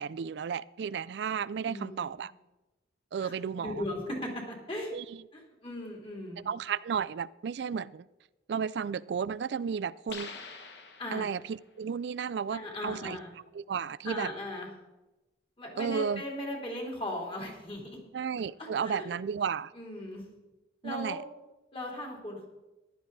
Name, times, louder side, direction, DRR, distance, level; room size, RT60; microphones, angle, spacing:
voice 1, 0.0-2.3 3.1-3.8 4.9-5.2 6.5-8.1 8.5-10.4 11.1-13.2 13.5-14.3 15.8-16.2 18.1-19.7 20.8-21.2, right 6 dB, 75° right, 0.3 m, -33 dB
voice 2, 1.7-2.1 3.2-4.9 5.3-6.5 11.0-11.3 12.5-13.3 14.0-14.7 15.6-18.0 18.6-19.1 19.7-20.2 20.8-21.2 21.7-22.5, left 1 dB, 30° left, 3.0 m, -38 dB
sound 1, 10.1-11.6, left 4 dB, 75° left, 1.5 m, -45 dB
14.5 x 11.5 x 4.0 m
head